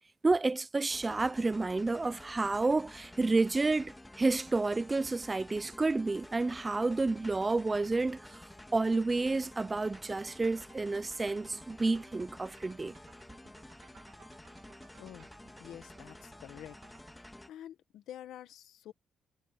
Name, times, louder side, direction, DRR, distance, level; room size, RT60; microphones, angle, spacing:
voice 1, 0.2-8.4 8.7-13.0, right 3 dB, 20° right, 0.7 m, -30 dB
sound 1, 0.9-17.5, left 1 dB, 10° left, 2.3 m, -51 dB
sound 2, 9.3-17.2, right 8 dB, 65° right, 3.0 m, -63 dB
voice 2, 15.0-15.3 15.6-16.8 17.5-18.9, left 11 dB, 80° left, 1.6 m, -48 dB
cardioid pair, 90°, 0 cm